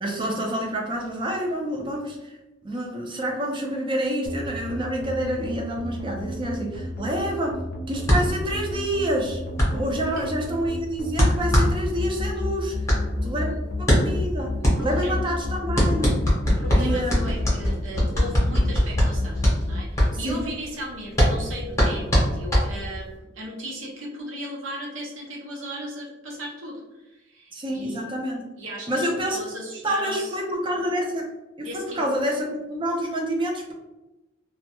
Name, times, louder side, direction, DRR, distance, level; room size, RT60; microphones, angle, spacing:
voice 1, 0.0-2.4 2.6-7.6 7.9-9.4 9.7-12.9 13.2-13.5 13.8-16.2 16.8-17.2 20.2-20.5 27.5-28.4 28.9-29.4 29.8-31.3 31.6-33.7, equal, 25° right, 0 dB, 0.4 m, -28 dB
sound 1, 4.3-19.8, left 2 dB, 50° left, 0.4 m, -29 dB
sound 2, 8.0-23.2, equal, 15° left, 0.8 m, -23 dB
voice 2, 10.0-10.3 13.3-13.6 14.6-15.4 16.4-19.4 19.7-28.1 28.6-30.4 31.6-32.0, equal, 85° right, -2 dB, 0.7 m, -37 dB
2.2 x 2.0 x 2.8 m, 1.0 s
head